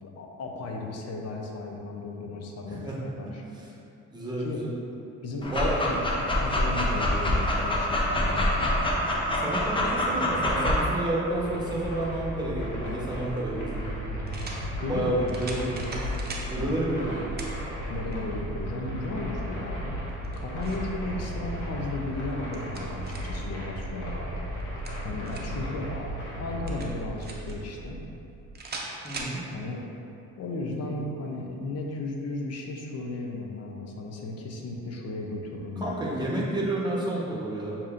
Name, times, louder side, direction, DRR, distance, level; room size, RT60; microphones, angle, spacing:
voice 1, 0.0-3.4 4.4-4.6 5.2-5.5 5.8-8.5 14.8-15.2 16.6-16.7 17.9-20.0 20.3-24.3 25.0-28.0 29.5-29.8 30.4-36.4, left 2 dB, 55° left, 0 dB, 0.7 m, -35 dB
voice 2, 3.2-3.7 4.1-4.7 5.5-5.8 9.4-14.1 14.9-17.3 29.0-29.4 35.8-37.8, right 1 dB, 15° right, -6 dB, 1.0 m, -30 dB
Dog, 5.4-10.8, left 1 dB, 15° left, 0.6 m, -26 dB
sound 1, 11.3-28.6, equal, 80° left, 1.2 m, -35 dB
sound 2, 14.3-14.6 15.3-16.5 17.4-17.6 18.1-18.2 20.1-20.9 22.2-23.4 24.6-25.6 26.7-27.6 28.5-29.4, right 3 dB, 35° right, 0.6 m, -39 dB
6.5 x 2.9 x 2.5 m, 2.7 s
cardioid pair, 90°, 30 cm